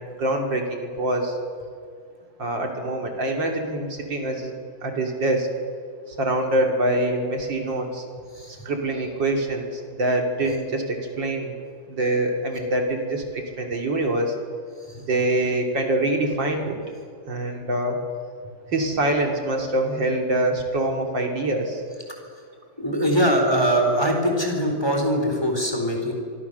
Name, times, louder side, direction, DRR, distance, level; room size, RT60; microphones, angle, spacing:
voice 1, 0.0-1.3 2.4-4.5 4.8-5.5 6.2-8.1 8.7-9.7 10.0-11.6 11.9-14.3 15.1-16.8 17.3-18.0 18.7-21.8, right 1 dB, 70° right, 2 dB, 3.4 m, -24 dB
voice 2, 22.8-26.1, equal, 10° left, 2 dB, 4.0 m, -22 dB
26.5 x 24.5 x 6.8 m, 2.1 s
omnidirectional pair, 2.1 m